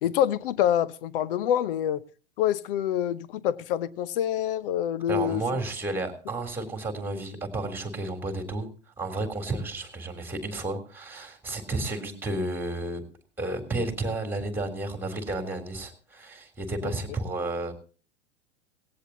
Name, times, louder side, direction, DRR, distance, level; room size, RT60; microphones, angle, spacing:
voice 1, 0.0-2.0 2.4-5.6 16.8-16.9, left 10 dB, 50° left, 1.0 m, -26 dB
voice 2, 5.1-8.7 9.0-13.0 13.4-17.7, right 2 dB, 5° right, 3.4 m, -32 dB
18.0 x 17.5 x 2.8 m
figure-of-eight pair, 95°, 35 cm